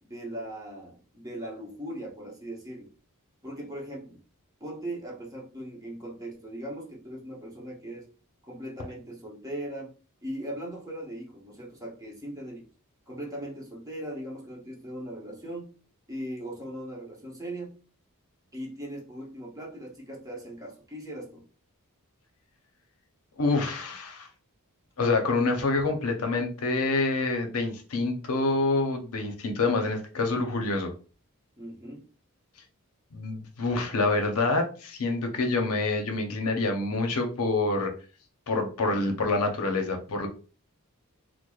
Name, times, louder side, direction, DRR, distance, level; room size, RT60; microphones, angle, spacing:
voice 1, 0.0-2.9 3.4-4.2 4.6-8.1 8.4-9.9 10.2-12.7 13.1-15.7 16.1-17.8 18.5-21.4 31.6-32.1, right 1 dB, 15° right, -2 dB, 0.9 m, -39 dB
voice 2, 23.4-24.3 25.0-30.9 33.1-37.9 38.5-40.3, left 3 dB, 70° left, 4 dB, 0.6 m, -27 dB
4.5 x 2.0 x 2.3 m, 0.36 s
head